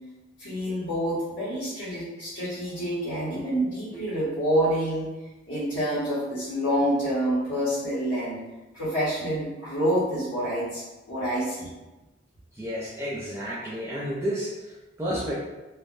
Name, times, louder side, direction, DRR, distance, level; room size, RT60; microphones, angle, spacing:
voice 1, 0.4-5.1 5.5-8.4 8.7-10.8 11.1-11.7, equal, 80° left, -11 dB, 1.0 m, -27 dB
voice 2, 12.5-15.3, equal, 15° right, -7 dB, 0.3 m, -31 dB
3.2 x 2.1 x 2.5 m, 1.1 s
head